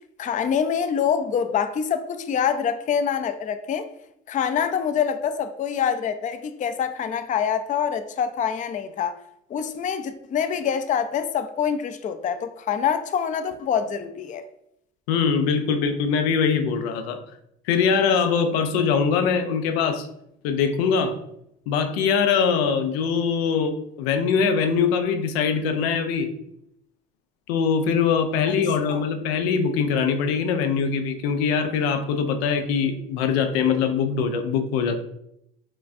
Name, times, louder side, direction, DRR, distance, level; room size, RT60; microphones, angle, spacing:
voice 1, 0.2-3.9 4.3-9.2 9.5-14.4 28.9-29.0, left 7 dB, 25° left, 0.4 m, -25 dB
voice 2, 15.1-17.2 17.7-20.1 20.4-21.1 21.7-26.3 27.5-35.0, left 6 dB, 85° left, 0.6 m, -22 dB
5.2 x 2.2 x 2.5 m
hypercardioid pair, 70°, 30 cm